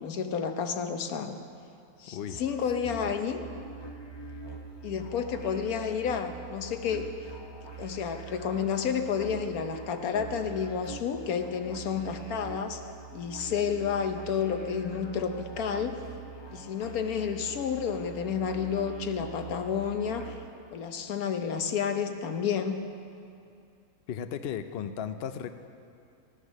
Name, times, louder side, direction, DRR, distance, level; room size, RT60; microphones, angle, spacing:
voice 1, 0.0-1.4 2.0-3.5 4.8-7.1 7.8-12.8 13.1-16.0 16.5-20.3 20.7-22.8, left 7 dB, 80° left, 7 dB, 1.3 m, -30 dB
voice 2, 2.1-2.4 24.1-25.5, left 8 dB, 60° left, 9 dB, 0.7 m, -35 dB
sound 1, 2.3-20.5, right 4 dB, 25° left, 0.7 m, -44 dB
14.5 x 10.0 x 6.4 m, 2.5 s
omnidirectional pair, 1.5 m